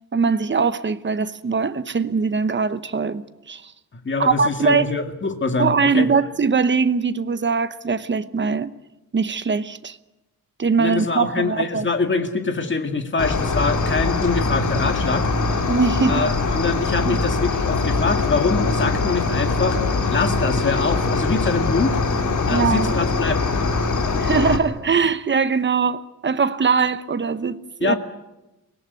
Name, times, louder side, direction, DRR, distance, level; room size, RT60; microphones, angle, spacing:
voice 1, 0.1-3.7 4.2-4.9 5.6-8.7 9.1-10.0 10.6-11.9 15.7-16.3 17.1-17.2 22.5-22.9 24.2-28.0, right 5 dB, 30° right, 0.9 m, -21 dB
voice 2, 4.0-6.1 10.8-15.3 16.1-19.8 20.1-22.0 22.5-23.4 27.8-28.0, left 4 dB, 35° left, 2.2 m, -24 dB
Cricket, 13.2-24.6, left 3 dB, 55° left, 2.5 m, -22 dB
24.0 x 18.0 x 9.6 m
wide cardioid pair, 150°, 35 cm